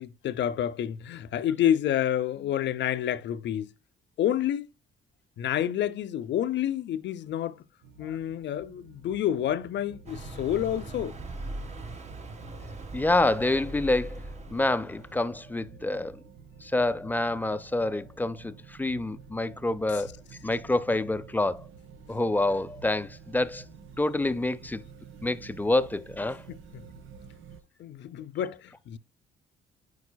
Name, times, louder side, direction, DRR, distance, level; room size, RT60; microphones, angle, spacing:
voice 1, 0.0-3.7 4.2-4.7 5.4-7.6 8.0-11.1 26.5-26.8 27.8-29.0, left 11 dB, 65° left, 0.6 m, -29 dB
sound 1, 7.8-27.6, right 6 dB, 80° right, 1.1 m, -50 dB
Car passing by, 10.1-15.6, right 2 dB, 35° right, 1.5 m, -40 dB
voice 2, 12.9-14.2 14.5-16.2 16.6-20.1 20.4-21.7 22.1-23.6 24.0-24.8 25.2-26.4, left 2 dB, 10° left, 0.5 m, -27 dB
9.5 x 4.9 x 2.2 m
cardioid pair, 90°, 20 cm